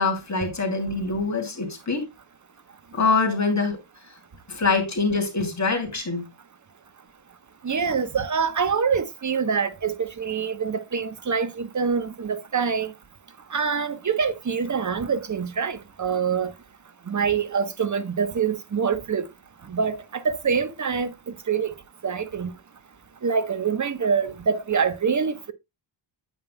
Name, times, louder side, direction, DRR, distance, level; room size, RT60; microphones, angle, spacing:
voice 1, 0.0-2.1 2.9-3.8 4.5-6.3, left 4 dB, 35° left, 2.9 m, -24 dB
voice 2, 7.6-12.9 13.5-16.5 17.1-19.2 19.7-21.1 21.5-21.7 22.0-22.5 23.2-25.5, right 6 dB, 35° right, 1.0 m, -25 dB
9.1 x 8.8 x 2.2 m
wide cardioid pair, 115°, 50 cm